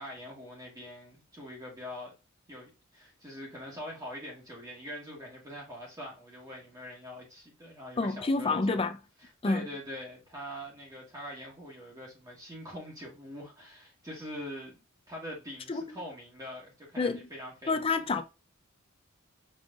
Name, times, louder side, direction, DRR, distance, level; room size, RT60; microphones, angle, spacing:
voice 1, 0.0-2.1 2.5-8.8 9.2-14.7 15.1-18.0, equal, 15° right, 1.3 m, -43 dB
voice 2, 8.0-9.0 9.4-9.7 15.7-16.0 17.0-17.2 17.7-18.2, left 3 dB, 25° left, 0.5 m, -28 dB
5.3 x 3.2 x 2.4 m
head